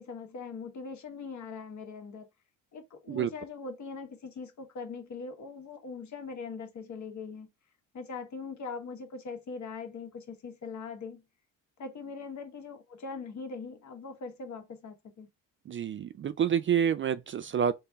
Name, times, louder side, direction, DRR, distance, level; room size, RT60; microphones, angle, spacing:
voice 1, 0.0-2.3 2.7-7.5 7.9-11.2 11.8-15.3, left 4 dB, 50° left, 1.5 m, -41 dB
voice 2, 15.7-17.7, right 8 dB, 35° right, 0.4 m, -28 dB
3.8 x 2.7 x 3.4 m
supercardioid pair, 80°, 36 cm